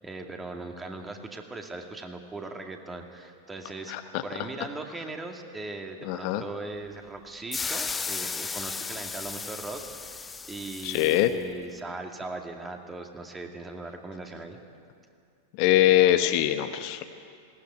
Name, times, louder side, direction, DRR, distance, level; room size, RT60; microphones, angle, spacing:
voice 1, 0.0-3.9 4.2-14.6, right 2 dB, 15° right, 3 dB, 2.2 m, -39 dB
voice 2, 3.9-4.2 6.0-6.4 10.8-11.3 15.5-17.0, left 13 dB, 45° left, 8 dB, 1.0 m, -23 dB
sound 1, 7.5-11.3, left 4 dB, 15° left, 0.7 m, -35 dB
20.5 x 18.5 x 9.3 m, 2.4 s
figure-of-eight pair, 90°, 0 cm